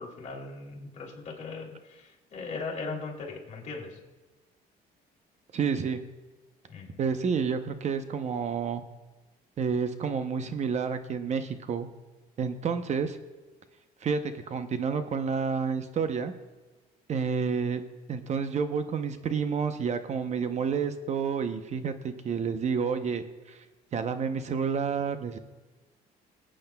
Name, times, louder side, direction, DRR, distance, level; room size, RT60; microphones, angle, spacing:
voice 1, 0.0-4.0 6.7-7.0, left 4 dB, 45° left, -1 dB, 2.6 m, -39 dB
voice 2, 5.5-6.0 7.0-8.8 9.6-11.9 12.4-13.2 14.0-16.3 17.1-17.8 18.1-23.6 23.9-25.4, right 6 dB, 40° right, 9 dB, 0.8 m, -29 dB
20.5 x 8.8 x 2.3 m, 1.2 s
cardioid pair, 110°, 17 cm